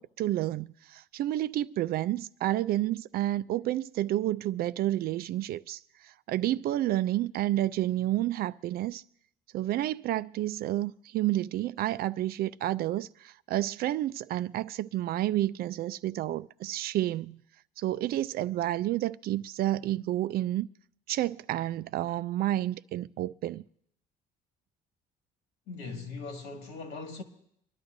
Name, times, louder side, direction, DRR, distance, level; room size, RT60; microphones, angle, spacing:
voice 1, 0.0-5.8 6.3-9.0 9.5-17.4 17.8-20.7 21.1-23.6, right 14 dB, 65° right, 0.4 m, -30 dB
voice 2, 25.7-27.2, left 4 dB, 85° left, 2.2 m, -40 dB
25.0 x 11.5 x 2.7 m
cardioid pair, 110°, 17 cm